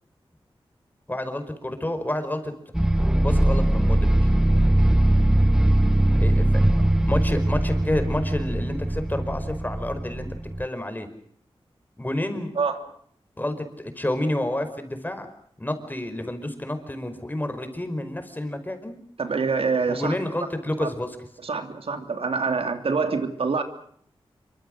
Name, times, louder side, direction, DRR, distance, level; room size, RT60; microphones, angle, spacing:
voice 1, 1.1-2.5 3.2-4.3 6.2-6.6 7.1-10.3 10.6-11.1 12.0-12.5 13.4-15.3 15.6-19.0 19.9-21.2, left 1 dB, 20° left, 8 dB, 5.0 m, -29 dB
sound 1, 2.7-10.7, right 1 dB, 5° right, 1.0 m, -21 dB
voice 2, 19.2-20.2 20.8-20.9 21.4-23.6, right 4 dB, 75° right, 7 dB, 3.0 m, -25 dB
27.0 x 25.0 x 6.5 m, 0.64 s
wide cardioid pair, 75°, 10 cm